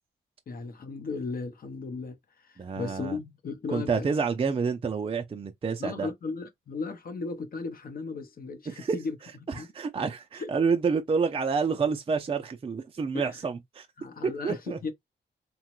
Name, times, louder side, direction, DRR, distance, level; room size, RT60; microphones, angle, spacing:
voice 1, 0.5-4.1 5.8-9.2 9.4-9.7 10.4-10.5 13.1-13.4 14.0-14.9, left 4 dB, 50° left, 0.7 m, -36 dB
voice 2, 2.6-3.2 3.7-6.1 8.7-9.0 9.5-13.9 14.4-14.8, right 5 dB, 30° right, 0.4 m, -28 dB
2.9 x 2.2 x 3.0 m
cardioid pair, 110°, 20 cm